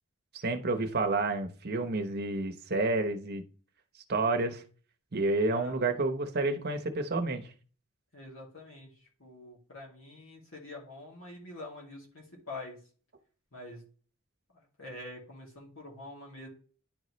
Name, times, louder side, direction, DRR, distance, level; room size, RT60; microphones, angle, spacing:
voice 1, 0.4-3.4 4.1-4.6 5.1-7.4, right 2 dB, 50° right, 5 dB, 0.9 m, -29 dB
voice 2, 5.5-5.9 8.1-8.9 9.2-12.8 13.5-13.8 14.5-16.5, left 2 dB, 65° left, -2 dB, 2.4 m, -45 dB
10.5 x 4.0 x 3.2 m, 0.40 s
head